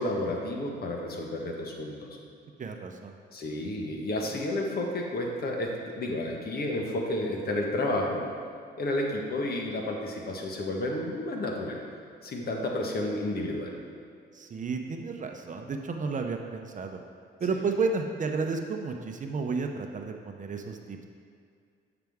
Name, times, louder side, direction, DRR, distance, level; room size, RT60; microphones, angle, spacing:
voice 1, 0.0-2.2 3.3-8.3 8.8-11.8 12.2-13.7, left 1 dB, 50° left, 0 dB, 1.2 m, -31 dB
voice 2, 2.6-3.1 14.3-17.0 17.4-21.0, right 4 dB, 40° right, 4 dB, 0.7 m, -32 dB
9.1 x 5.9 x 3.6 m, 2.3 s
cardioid pair, 90°, 20 cm